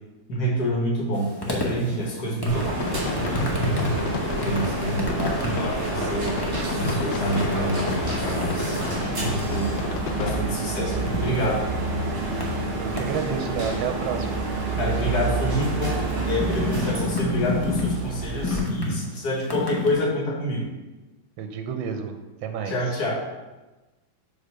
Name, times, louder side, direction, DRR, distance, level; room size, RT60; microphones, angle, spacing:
voice 1, 0.3-2.8 3.2-3.7 4.3-6.3 6.8-9.7 10.2-11.6 14.8-20.7 22.7-23.1, equal, 55° left, -1 dB, 1.8 m, -28 dB
sound 1, 1.1-19.9, left 2 dB, 20° left, 0.7 m, -32 dB
sound 2, 2.5-18.6, right 3 dB, 60° right, 2.9 m, -28 dB
sound 3, 2.8-10.4, left 7 dB, 75° left, 1.2 m, -33 dB
voice 2, 12.8-14.4 21.4-22.8, right 6 dB, 85° right, 5 dB, 1.5 m, -30 dB
7.5 x 3.4 x 5.5 m, 1.1 s
omnidirectional pair, 2.1 m